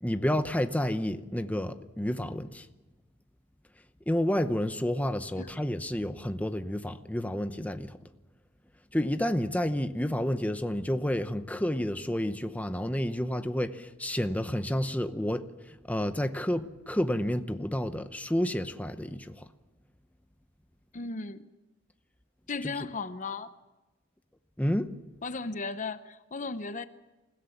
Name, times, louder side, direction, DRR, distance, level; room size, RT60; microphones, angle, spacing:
voice 1, 0.0-2.7 4.1-8.0 8.9-19.5 22.6-22.7 24.6-24.9, left 1 dB, 5° left, 0.8 m, -30 dB
voice 2, 20.9-21.5 22.5-23.5 25.2-26.8, left 3 dB, 40° left, 0.8 m, -36 dB
28.5 x 17.0 x 7.2 m
head